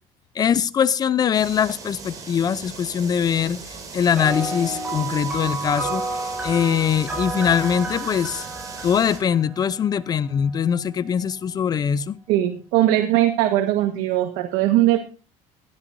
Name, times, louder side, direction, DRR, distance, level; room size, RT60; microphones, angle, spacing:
voice 1, 0.4-3.6 3.9-6.0 6.4-8.4 8.8-12.2, left 8 dB, 30° left, 17 dB, 0.6 m, -22 dB
sound 1, 1.3-9.2, right 4 dB, 30° right, 5.2 m, -38 dB
sound 2, 4.2-9.9, right 3 dB, 10° right, 6.7 m, -31 dB
voice 2, 12.3-15.0, right 14 dB, 90° right, 5 dB, 1.5 m, -20 dB
16.5 x 13.0 x 2.7 m, 0.35 s
cardioid pair, 150°, 13 cm